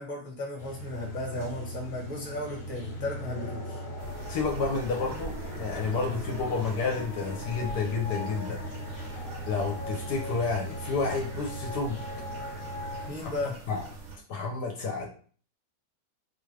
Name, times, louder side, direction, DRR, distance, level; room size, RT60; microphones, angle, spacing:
voice 1, 0.0-3.8 13.1-13.6, left 2 dB, 25° left, -1 dB, 1.1 m, -35 dB
sound 1, 0.6-13.1, equal, 40° left, 1.3 m, -38 dB
sound 2, 4.0-14.2, right 3 dB, 55° right, 0.8 m, -44 dB
voice 2, 4.3-8.6 9.1-9.2 9.5-12.0 13.2-13.3 13.7-13.8 14.3-15.2, left 4 dB, 70° left, 1 dB, 1.2 m, -30 dB
4.5 x 2.4 x 3.2 m, 0.44 s
omnidirectional pair, 1.9 m